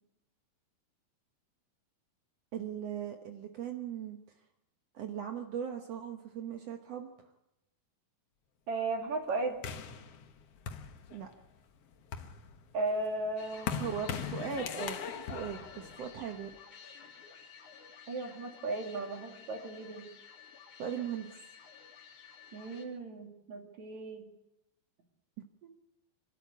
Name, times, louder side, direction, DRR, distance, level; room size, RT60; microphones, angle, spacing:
voice 1, 2.5-4.2 4.9-7.1 11.1-11.3 13.8-16.5 20.8-21.3 25.6-25.7, right 8 dB, 80° right, 4 dB, 1.4 m, -39 dB
voice 2, 8.7-9.6 12.7-13.9 18.1-20.1 22.5-24.3, right 2 dB, 50° right, 3 dB, 3.4 m, -36 dB
sound 1, 9.6-11.5 11.9-16.6, left 7 dB, 75° left, 1.4 m, -40 dB
sound 2, 13.4-22.8, left 6 dB, 50° left, 3.9 m, -53 dB
25.0 x 13.0 x 8.3 m, 0.88 s
omnidirectional pair, 4.7 m